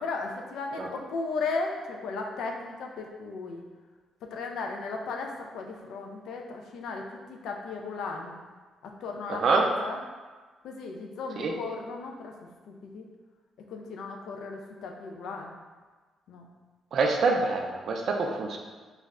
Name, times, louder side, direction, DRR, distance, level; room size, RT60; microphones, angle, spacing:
voice 1, 0.0-3.6 4.2-8.3 8.8-10.0 10.6-12.4 12.7-13.1 13.7-15.5 16.3-16.5 18.2-18.6, left 4 dB, 80° left, 2 dB, 0.3 m, -36 dB
voice 2, 9.3-9.6 11.4-11.5 16.9-18.6, right 4 dB, 60° right, 2 dB, 0.4 m, -26 dB
2.4 x 2.0 x 3.5 m, 1.4 s
cardioid pair, 90°, 0 cm